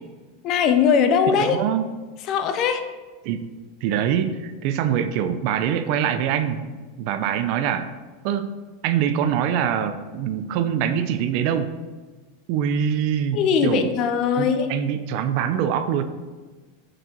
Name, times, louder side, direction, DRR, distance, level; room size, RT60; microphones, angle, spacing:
voice 1, 0.4-1.6 2.3-2.9 13.3-14.7, left 7 dB, 40° left, 7 dB, 0.6 m, -20 dB
voice 2, 1.4-1.9 3.2-3.5 3.8-6.7 7.0-7.9 8.2-8.5 8.8-11.8 12.5-13.9 14.4-16.0, right 9 dB, 55° right, 10 dB, 0.5 m, -24 dB
6.5 x 4.5 x 4.4 m, 1.3 s
supercardioid pair, 140°, 0 cm